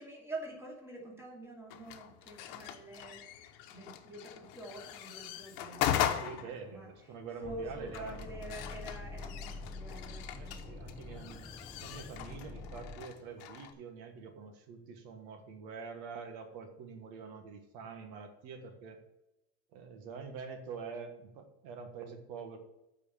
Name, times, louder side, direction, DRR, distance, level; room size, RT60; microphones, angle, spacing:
voice 1, 0.0-6.9 7.4-10.6, right 1 dB, 10° right, -1 dB, 2.6 m, -47 dB
sound 1, 1.7-13.7, left 11 dB, 80° left, 1.0 m, -40 dB
voice 2, 5.8-8.2 10.3-11.5 11.8-19.0 19.7-22.6, right 5 dB, 85° right, 6 dB, 1.5 m, -46 dB
sound 2, 7.4-13.0, left 3 dB, 10° left, 0.7 m, -46 dB
8.6 x 4.7 x 7.4 m, 0.90 s
cardioid pair, 120°, 30 cm